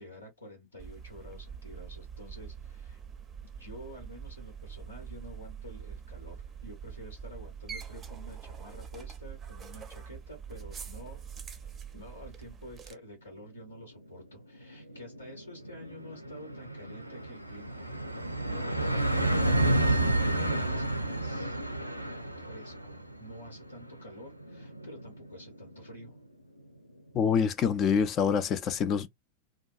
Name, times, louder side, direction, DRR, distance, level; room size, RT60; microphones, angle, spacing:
voice 1, 0.0-3.0 3.5-11.2 11.6-17.9 18.5-21.6 22.4-26.2, equal, 80° left, 1.1 m, -49 dB
sound 1, 0.8-12.9, right 7 dB, 20° right, 0.6 m, -44 dB
sound 2, 13.8-13.9 14.2-14.3 14.6-26.0, right 1 dB, 90° right, 0.5 m, -31 dB
voice 2, 27.1-29.1, left 7 dB, 30° left, 0.4 m, -26 dB
2.5 x 2.2 x 2.3 m
figure-of-eight pair, 90°, 0 cm